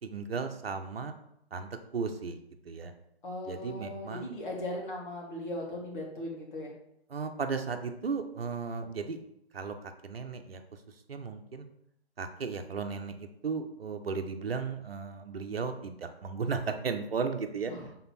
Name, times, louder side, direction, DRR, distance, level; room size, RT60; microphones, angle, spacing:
voice 1, 0.0-1.1 1.5-2.4 2.6-2.9 3.4-4.3 7.1-9.2 9.5-10.6 11.1-11.7 12.2-17.7, right 5 dB, 60° right, 6 dB, 0.9 m, -35 dB
voice 2, 3.2-6.7 17.7-17.9, left 1 dB, 50° left, -2 dB, 2.2 m, -38 dB
6.9 x 3.8 x 4.3 m, 0.78 s
figure-of-eight pair, 135°, 33 cm